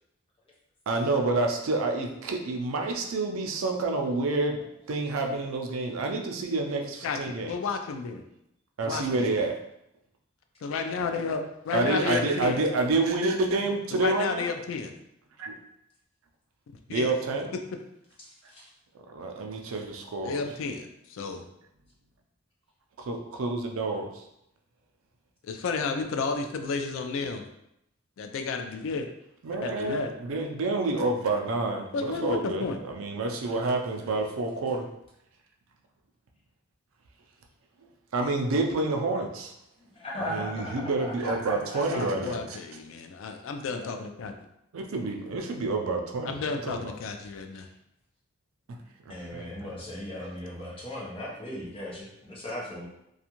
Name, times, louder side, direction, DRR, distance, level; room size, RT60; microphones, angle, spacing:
voice 1, 0.9-4.6 4.9-7.5 8.8-9.6 11.7-14.4 15.4-15.5 16.9-17.5 19.1-20.4 23.0-24.1 29.4-34.9 38.1-39.5 40.3-42.6 44.7-46.9 49.1-49.7, right 3 dB, 80° right, 3 dB, 0.4 m, -28 dB
voice 2, 7.0-8.2 8.8-9.3 10.6-12.6 13.9-15.0 16.9-17.1 20.2-21.5 25.4-27.4 28.2-29.1 29.6-30.1 31.9-32.8 41.9-44.3 46.2-47.7, left 4 dB, 75° left, 6 dB, 0.3 m, -32 dB
voice 3, 18.2-18.6 39.8-42.0 43.8-44.0 47.6-47.7 49.1-52.9, left 1 dB, 25° left, -5 dB, 0.7 m, -38 dB
2.5 x 2.3 x 2.9 m, 0.81 s
head